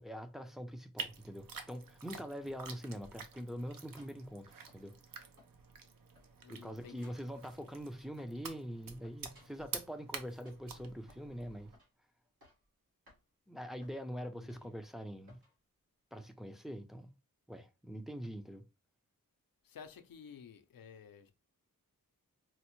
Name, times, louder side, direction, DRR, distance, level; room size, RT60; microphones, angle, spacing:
voice 1, 0.0-4.9 6.5-11.7 13.5-15.4 16.1-17.1 17.5-18.6, equal, ahead, 0.4 m, -44 dB
sound 1, 1.0-11.8, right 5 dB, 70° right, 0.6 m, -49 dB
sound 2, 3.3-5.1 5.4-5.9 6.1-8.5 8.8-10.0 10.4-11.3 11.7-12.0 12.2-12.7 13.1-13.2 13.8-14.0 14.5-14.9 15.3-15.6 16.1-16.3, left 1 dB, 85° right, 1.8 m, -66 dB
voice 2, 6.4-7.1 14.2-14.7 19.6-21.3, left 7 dB, 75° left, 0.6 m, -53 dB
4.3 x 2.1 x 2.9 m
wide cardioid pair, 70°, 35 cm